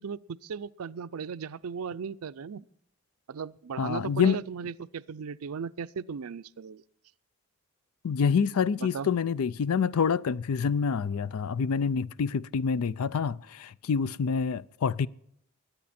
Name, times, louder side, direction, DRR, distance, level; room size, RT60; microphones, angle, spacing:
voice 1, 0.0-2.6 3.3-6.8 8.8-9.1, right 6 dB, 90° right, 0.5 m, -37 dB
voice 2, 3.8-4.4 8.0-15.1, left 6 dB, 90° left, 0.4 m, -27 dB
22.0 x 9.4 x 4.3 m
head